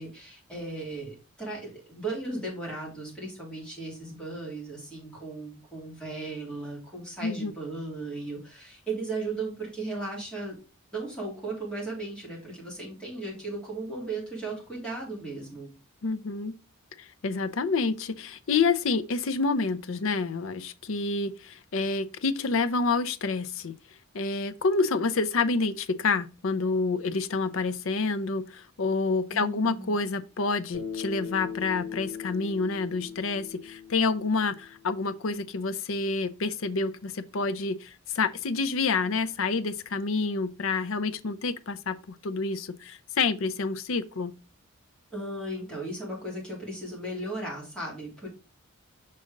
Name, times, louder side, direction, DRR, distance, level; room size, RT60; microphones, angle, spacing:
voice 1, 0.0-10.6 10.9-15.7 29.3-29.9 45.1-48.3, right 2 dB, 5° left, 3.0 m, -36 dB
voice 2, 7.2-7.5 16.0-16.5 17.0-23.8 24.1-44.3, left 4 dB, 70° left, 0.5 m, -28 dB
Bass guitar, 30.7-35.1, left 6 dB, 25° left, 2.9 m, -39 dB
6.4 x 4.2 x 3.7 m
head